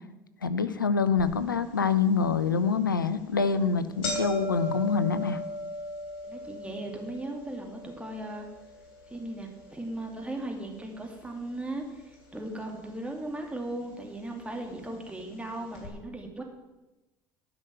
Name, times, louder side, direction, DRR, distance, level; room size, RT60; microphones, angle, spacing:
voice 1, 0.4-5.4, left 5 dB, 90° left, 12 dB, 0.6 m, -26 dB
sound 1, 1.2-1.3 1.8-1.9 2.7-2.9 3.3-3.4 3.6-11.8 12.1-12.9 13.7-13.8 14.7-14.8 15.1-15.2 15.7-15.9, equal, 60° left, 3.6 m, -38 dB
voice 2, 6.2-8.5 9.1-16.4, right 1 dB, 10° right, 1 dB, 2.6 m, -37 dB
12.5 x 6.0 x 7.5 m, 1.0 s
figure-of-eight pair, 60°, 11 cm